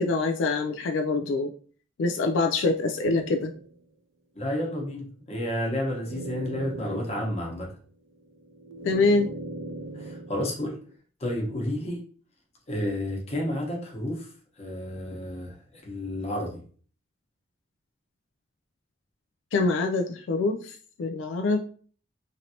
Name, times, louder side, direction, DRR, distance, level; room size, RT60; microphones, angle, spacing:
voice 1, 0.0-1.5 2.0-3.5 8.8-9.3 19.5-21.6, left 3 dB, 75° left, 4 dB, 0.3 m, -25 dB
sound 1, 3.0-3.7 5.6-7.6 8.1-10.9, right 2 dB, 80° right, 0.4 m, -40 dB
voice 2, 4.3-7.8 10.0-10.8 11.2-12.0 12.7-14.3 14.6-16.6, left 1 dB, 35° left, -1 dB, 0.9 m, -31 dB
3.2 x 2.6 x 2.8 m, 0.43 s
head